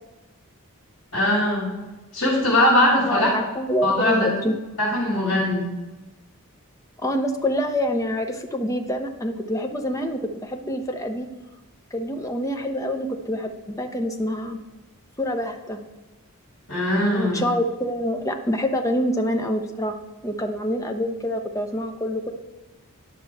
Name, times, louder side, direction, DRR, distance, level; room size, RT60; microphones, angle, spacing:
voice 1, 1.1-1.7 2.1-3.3 3.8-4.3 4.8-5.7 16.7-17.4, left 1 dB, 55° left, -5 dB, 3.0 m, -20 dB
voice 2, 3.1-4.6 7.0-11.3 11.9-14.6 15.2-15.8 17.1-20.0 20.2-22.3, equal, 15° left, 4 dB, 0.7 m, -26 dB
10.5 x 5.8 x 4.7 m, 1.1 s
head